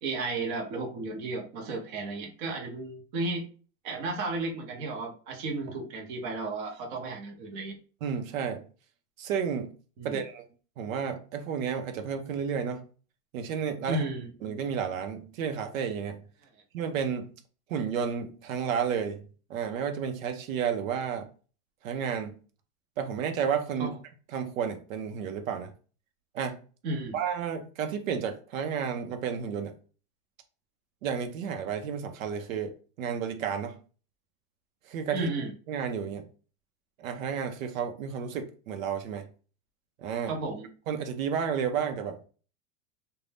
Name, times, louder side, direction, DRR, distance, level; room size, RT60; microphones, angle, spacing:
voice 1, 0.0-3.5 3.8-7.8 10.0-10.2 13.9-14.3 23.8-23.9 26.8-27.2 35.1-35.5 40.3-40.7, right 3 dB, 35° right, 0.7 m, -33 dB
voice 2, 8.0-8.6 9.2-9.7 10.0-10.4 10.8-12.8 13.3-14.0 14.4-16.3 16.7-17.3 17.7-21.3 21.8-22.3 23.0-23.9 24.3-25.7 26.3-26.6 27.1-29.8 31.0-33.8 34.9-35.3 35.7-36.3 37.0-39.3 40.0-40.3 40.9-42.2, right 7 dB, 80° right, 0.7 m, -31 dB
2.5 x 2.2 x 3.3 m
supercardioid pair, 170°, 40 cm